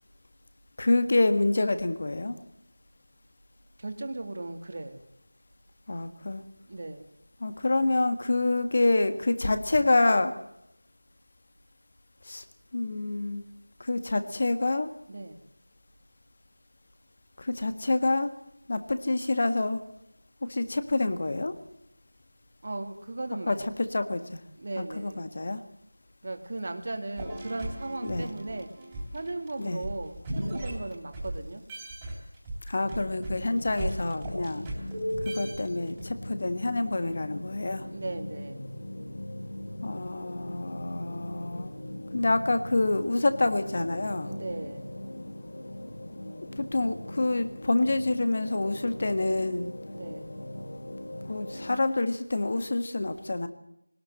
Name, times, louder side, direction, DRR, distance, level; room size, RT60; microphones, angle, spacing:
voice 1, 0.8-2.4 5.9-6.4 7.4-10.3 12.2-12.4 12.7-13.4 13.8-14.9 17.4-18.3 18.7-19.8 20.4-21.5 23.5-24.4 24.8-25.6 28.0-28.3 29.6-29.8 32.7-34.7 35.2-37.9 39.8-41.7 42.1-44.3 46.3-49.7 51.2-53.5, left 2 dB, 30° left, 10 dB, 1.7 m, -27 dB
voice 2, 3.8-5.0 6.7-7.1 15.1-15.4 22.6-23.8 24.6-25.3 26.2-28.7 29.1-31.6 37.9-38.7 44.2-45.0 49.9-50.3, right 2 dB, 35° right, 7 dB, 2.2 m, -37 dB
sound 1, 27.2-31.4 31.7-36.0, right 1 dB, 5° right, 3.3 m, -36 dB
sound 2, 32.8-51.7, left 1 dB, 50° left, 5.3 m, -40 dB
20.5 x 19.0 x 7.7 m, 0.80 s
figure-of-eight pair, 175°, 0 cm